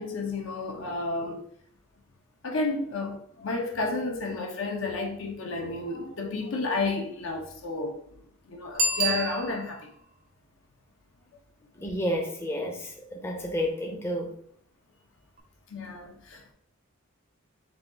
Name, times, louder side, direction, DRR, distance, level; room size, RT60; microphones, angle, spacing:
voice 1, 0.0-1.4 2.4-8.0 8.5-9.9 15.7-16.5, left 3 dB, 70° left, 0.8 m, -31 dB
Bicycle bell, 8.7-9.9 15.4-15.5, right 2 dB, 45° right, 0.6 m, -28 dB
voice 2, 11.8-14.3, equal, 15° left, 0.6 m, -31 dB
4.1 x 2.4 x 3.8 m
head